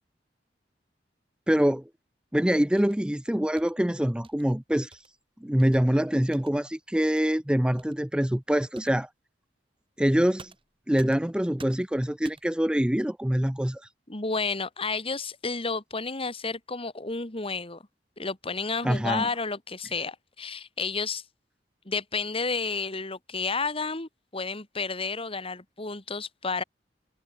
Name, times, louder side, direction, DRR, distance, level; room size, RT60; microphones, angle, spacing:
voice 1, 1.5-1.8 2.3-5.0 5.4-9.1 10.0-10.5 10.9-13.8 18.8-19.3, equal, 5° right, 0.5 m, -25 dB
sound 1, 2.8-3.1 3.6-3.8 4.2-4.5 4.9-5.1 5.6-5.8 6.3-6.5 7.0-7.2 7.8-7.9 8.7-9.0 10.4-11.3 11.6-11.9 12.2-12.6, right 3 dB, 30° right, 6.8 m, -50 dB
voice 2, 14.1-17.8 18.2-21.2 21.9-26.6, left 4 dB, 35° left, 2.3 m, -31 dB
head